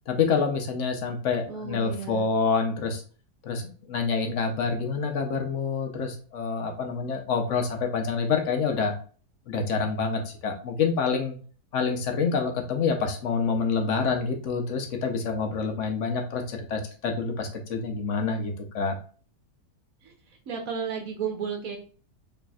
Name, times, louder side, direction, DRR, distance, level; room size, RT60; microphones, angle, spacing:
voice 1, 0.1-3.0 3.4-8.9 9.5-11.4 11.7-19.0, left 5 dB, 60° left, 4 dB, 1.0 m, -27 dB
voice 2, 1.5-2.3 20.0-20.1 20.5-21.8, right 6 dB, 65° right, 3 dB, 1.2 m, -33 dB
4.3 x 3.3 x 2.3 m, 0.39 s
omnidirectional pair, 1.7 m